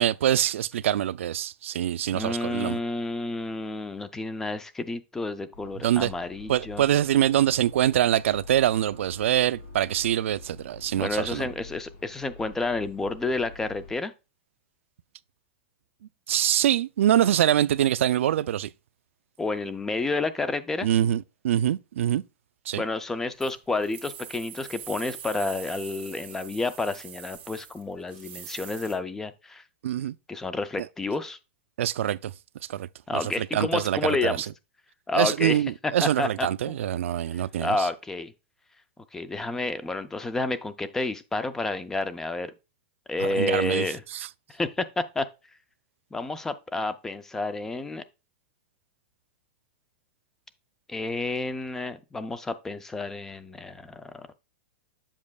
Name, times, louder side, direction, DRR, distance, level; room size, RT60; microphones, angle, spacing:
voice 1, 0.0-2.8 5.8-6.1 6.5-11.5 16.3-18.7 20.8-22.2 22.7-22.8 29.8-30.1 31.8-32.3 32.7-32.9 33.1-34.4 35.1-37.9 43.2-43.9 44.1-44.3, right 11 dB, 85° right, 0.3 m, -24 dB
voice 2, 2.1-6.8 10.9-14.1 19.4-20.9 22.8-29.6 30.3-31.4 33.1-34.5 35.1-36.8 37.3-38.3 39.1-42.5 43.1-44.0 44.5-45.3 46.1-48.0 50.9-54.3, left 3 dB, 5° left, 0.3 m, -30 dB
sound 1, 5.5-13.9, left 3 dB, 45° left, 2.6 m, -47 dB
sound 2, 23.4-28.9, right 9 dB, 20° right, 1.6 m, -43 dB
7.4 x 7.1 x 2.3 m
supercardioid pair, 170°, 7 cm